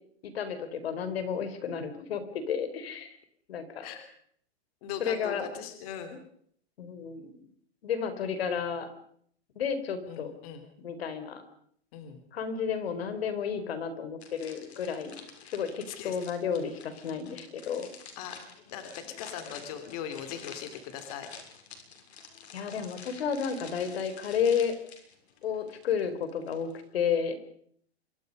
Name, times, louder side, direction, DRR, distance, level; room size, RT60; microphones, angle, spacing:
voice 1, 0.2-3.2 3.5-3.9 5.0-5.5 6.8-7.4 7.8-8.9 9.6-10.3 10.8-11.4 12.3-15.2 15.4-17.9 22.5-24.7 25.4-27.4, left 7 dB, 70° left, 11 dB, 4.3 m, -32 dB
voice 2, 4.8-6.2 10.1-10.6 11.9-12.2 15.9-16.2 18.2-18.4 18.7-21.3, left 8 dB, 35° left, 8 dB, 3.1 m, -39 dB
sound 1, 14.2-26.9, left 6 dB, 85° left, 6.8 m, -49 dB
26.0 x 24.0 x 5.4 m, 0.63 s
supercardioid pair, 175°, 32 cm